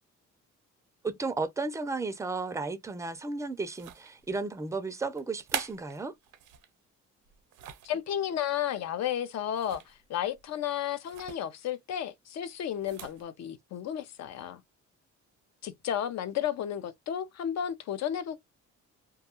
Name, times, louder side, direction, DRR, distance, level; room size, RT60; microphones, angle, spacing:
voice 1, 1.0-6.1, right 3 dB, 10° right, 0.4 m, -34 dB
sound 1, 3.7-4.3 5.2-6.7 7.2-8.0 9.5-10.0 10.3-10.5 11.1-11.4 12.7-13.2, right 10 dB, 80° right, 0.6 m, -41 dB
voice 2, 7.8-14.6 15.6-18.4, left 10 dB, 60° left, 0.5 m, -33 dB
2.3 x 2.2 x 2.8 m
cardioid pair, 90°, 30 cm